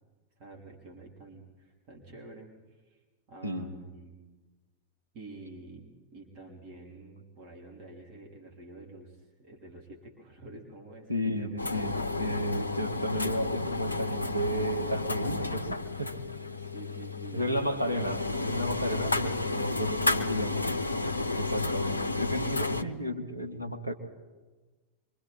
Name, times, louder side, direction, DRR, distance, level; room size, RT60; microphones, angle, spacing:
voice 1, 0.4-2.5 2.9-3.0 3.3-4.2 5.1-5.8 6.1-13.2 16.6-17.9, right 2 dB, 40° right, 0 dB, 3.7 m, -48 dB
voice 2, 3.4-3.7 11.1-16.1 17.3-20.8 21.4-23.9, equal, 85° right, 2 dB, 1.9 m, -33 dB
sound 1, 11.6-22.8, left 3 dB, 80° left, 0.7 m, -32 dB
26.0 x 24.0 x 4.4 m, 1.2 s
figure-of-eight pair, 90°, 0 cm